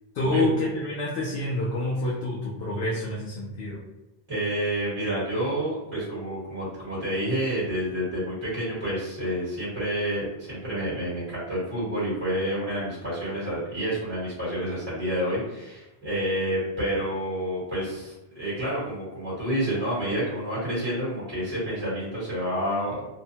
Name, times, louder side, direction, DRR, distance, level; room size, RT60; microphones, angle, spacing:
voice 1, 0.1-3.8, left 2 dB, 70° left, -5 dB, 0.8 m, -27 dB
voice 2, 4.3-23.1, right 1 dB, 25° right, -9 dB, 1.1 m, -29 dB
2.7 x 2.1 x 2.7 m, 0.99 s
omnidirectional pair, 1.1 m